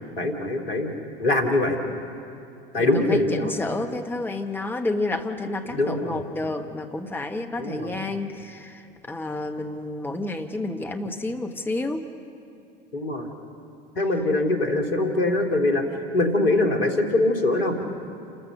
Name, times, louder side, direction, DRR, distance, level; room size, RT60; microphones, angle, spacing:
voice 1, 0.2-0.9 1.2-1.8 2.7-3.5 5.7-6.2 7.6-8.0 12.9-13.3 14.0-17.7, left 2 dB, 75° left, 3 dB, 2.7 m, -23 dB
voice 2, 2.8-12.1, left 2 dB, 5° left, 4 dB, 1.3 m, -30 dB
29.5 x 13.5 x 6.6 m, 2.5 s
figure-of-eight pair, 75°, 29 cm